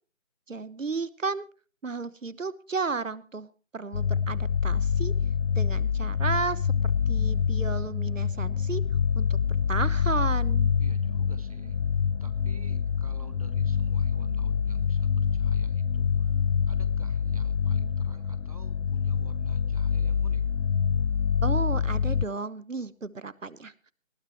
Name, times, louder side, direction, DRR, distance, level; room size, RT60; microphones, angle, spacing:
voice 1, 0.5-1.4 1.8-5.1 5.6-8.8 9.1-10.7 21.4-23.7, right 4 dB, 70° right, 18 dB, 1.2 m, -33 dB
sound 1, 3.9-22.3, left 6 dB, 65° left, 0.6 m, -26 dB
voice 2, 10.8-11.8 12.2-20.4, right 2 dB, 25° right, 12 dB, 0.8 m, -48 dB
19.5 x 14.5 x 3.1 m, 0.35 s
figure-of-eight pair, 160°, 40 cm